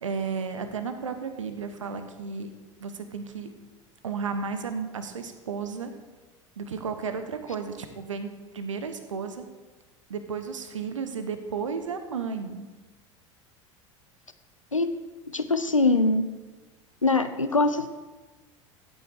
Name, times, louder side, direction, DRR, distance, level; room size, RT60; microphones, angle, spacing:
voice 1, 0.0-2.5 2.8-3.5 4.0-5.9 6.6-9.4 10.1-12.7, right 5 dB, 75° right, 8 dB, 1.2 m, -33 dB
voice 2, 15.3-16.2 17.0-17.9, left 3 dB, 90° left, 11 dB, 0.7 m, -22 dB
15.0 x 8.7 x 4.8 m, 1.2 s
figure-of-eight pair, 75°, 16 cm